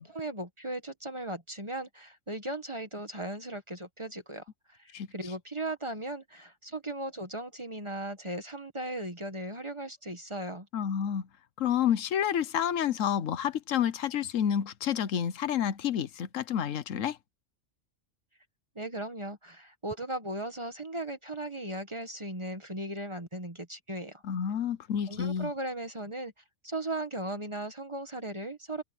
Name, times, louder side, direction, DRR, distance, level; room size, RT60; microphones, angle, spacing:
voice 1, 0.0-10.7 18.7-24.2 25.1-26.3 26.6-28.8, right 1 dB, 25° right, 1.5 m, -37 dB
voice 2, 10.7-11.3 11.6-17.2 24.2-25.5, left 9 dB, 90° left, 1.2 m, -29 dB
omnidirectional pair, 1.3 m